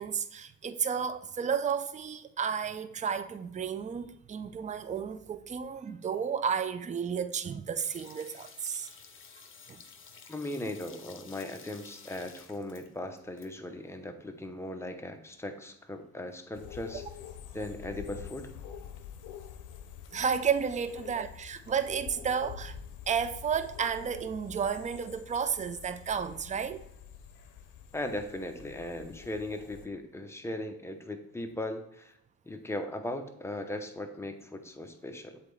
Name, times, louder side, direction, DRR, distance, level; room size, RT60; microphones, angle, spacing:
voice 1, 0.0-8.9 9.7-9.8 20.1-22.7 23.1-26.8, right 7 dB, 25° right, 0.4 m, -32 dB
sound 1, 7.8-13.5 13.7-13.8, left 6 dB, 40° left, 0.9 m, -52 dB
voice 2, 10.3-17.0 17.5-18.5 27.9-32.1 32.4-35.4, left 1 dB, 10° left, 0.8 m, -38 dB
sound 2, 16.5-29.9, left 8 dB, 85° left, 0.6 m, -47 dB
7.4 x 4.0 x 3.3 m
cardioid pair, 90°, 30 cm